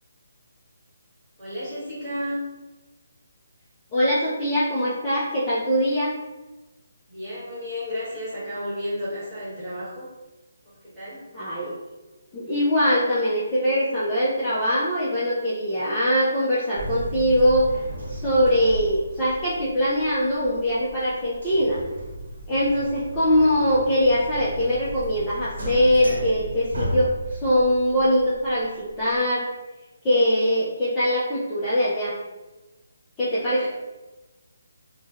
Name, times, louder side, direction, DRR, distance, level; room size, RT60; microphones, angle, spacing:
voice 1, 1.4-2.4 7.1-10.1 10.6-11.3 33.5-33.7, equal, 10° right, -12 dB, 1.2 m, -32 dB
voice 2, 3.9-6.1 11.3-11.8 12.3-17.7 18.1-21.8 22.5-29.5 30.0-32.2 33.2-33.7, equal, 15° left, -11 dB, 0.4 m, -22 dB
sound 1, 16.8-29.2, right 1 dB, 75° right, 0.9 m, -35 dB
3.1 x 2.1 x 2.3 m, 1.1 s
hypercardioid pair, 175°, 0 cm